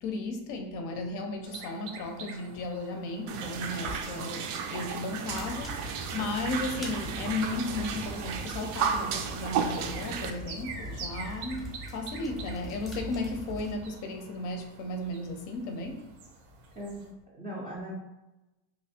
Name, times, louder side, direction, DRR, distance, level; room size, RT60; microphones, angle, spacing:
voice 1, 0.0-16.1, left 2 dB, 45° left, 4 dB, 0.5 m, -35 dB
sound 1, 1.4-17.1, right 4 dB, 90° right, 0.9 m, -48 dB
sound 2, 3.3-10.3, right 6 dB, 70° right, 0.6 m, -33 dB
sound 3, 5.3-13.7, right 1 dB, ahead, 0.7 m, -42 dB
voice 2, 16.8-18.0, equal, 20° right, -5 dB, 0.3 m, -39 dB
3.0 x 2.5 x 4.1 m, 1.0 s
cardioid pair, 160°, 46 cm